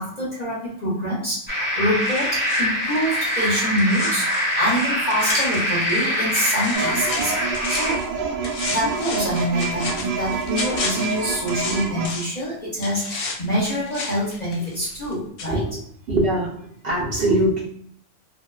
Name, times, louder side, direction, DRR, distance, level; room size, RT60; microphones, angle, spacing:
voice 1, 0.0-8.0 8.7-15.6, equal, 45° left, -7 dB, 0.6 m, -26 dB
sound 1, 1.5-7.9, equal, 10° right, 0.6 m, -24 dB
sound 2, 2.0-6.1 6.3-8.1 8.4-12.4 12.8-15.1 15.4-15.5, left 3 dB, 75° left, 0.9 m, -33 dB
sound 3, 6.7-12.1, right 5 dB, 85° right, 1.0 m, -27 dB
voice 2, 15.5-15.8 16.1-16.5 16.8-17.6, right 1 dB, 55° right, -4 dB, 0.7 m, -21 dB
2.5 x 2.2 x 2.2 m, 0.67 s
omnidirectional pair, 1.4 m